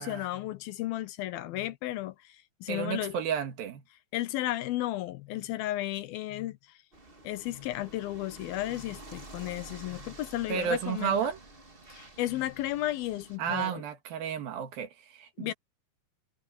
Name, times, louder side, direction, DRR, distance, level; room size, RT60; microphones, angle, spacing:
voice 1, 0.0-3.1 4.1-6.6 7.2-11.3 11.9-13.8 15.4-15.5, left 15 dB, 85° left, 2.9 m, -34 dB
voice 2, 2.7-3.8 10.5-11.4 13.4-15.5, right 8 dB, 80° right, 3.6 m, -32 dB
sound 1, 6.9-13.4, right 2 dB, 20° right, 1.6 m, -50 dB
omnidirectional pair, 4.2 m